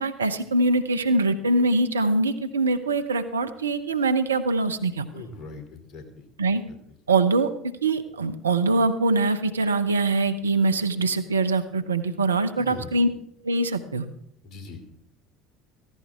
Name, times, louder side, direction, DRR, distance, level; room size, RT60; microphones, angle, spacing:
voice 1, 0.0-5.2 6.4-6.6 7.1-13.1 13.4-14.0, right 2 dB, 85° right, 9 dB, 0.8 m, -23 dB
voice 2, 5.1-6.2 6.9-7.0 12.6-13.0 14.4-14.9, left 3 dB, 45° left, 5 dB, 3.0 m, -40 dB
16.0 x 15.0 x 3.6 m, 0.72 s
hypercardioid pair, 65°, 0 cm